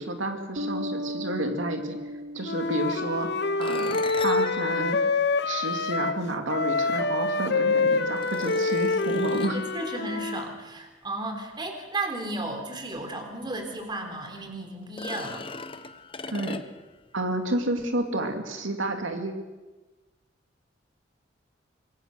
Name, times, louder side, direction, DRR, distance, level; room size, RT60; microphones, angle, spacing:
voice 1, 0.0-2.0 2.3-3.3 3.6-5.0 5.4-9.6 16.3-16.6 17.1-19.3, right 1 dB, 85° right, 5 dB, 2.6 m, -30 dB
sound 1, 0.6-3.9, equal, 65° right, 3.8 m, -36 dB
Wind instrument woodwind instrument, 2.4-6.2 6.5-10.5, left 3 dB, 60° left, 1.1 m, -26 dB
sound 2, 3.6-6.1 7.3-7.4 8.2-9.7 13.0-13.1 13.5-13.6 14.8-17.0, left 4 dB, 25° left, 0.9 m, -40 dB
voice 2, 9.5-15.5, right 2 dB, 25° right, 5 dB, 3.7 m, -34 dB
26.5 x 22.5 x 6.6 m, 1.2 s
head